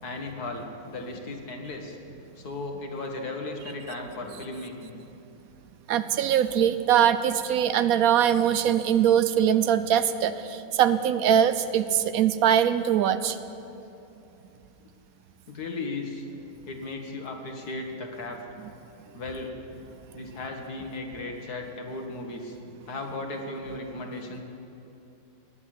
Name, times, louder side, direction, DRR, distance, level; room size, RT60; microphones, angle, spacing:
voice 1, 0.0-2.0 2.4-5.0 15.5-16.2 16.7-18.4 19.1-19.5 20.1-22.6 22.9-24.4, left 2 dB, 85° left, 3 dB, 2.1 m, -36 dB
voice 2, 5.9-13.4, right 9 dB, 75° right, 12 dB, 1.1 m, -22 dB
20.0 x 8.1 x 7.9 m, 2.8 s
omnidirectional pair, 1.6 m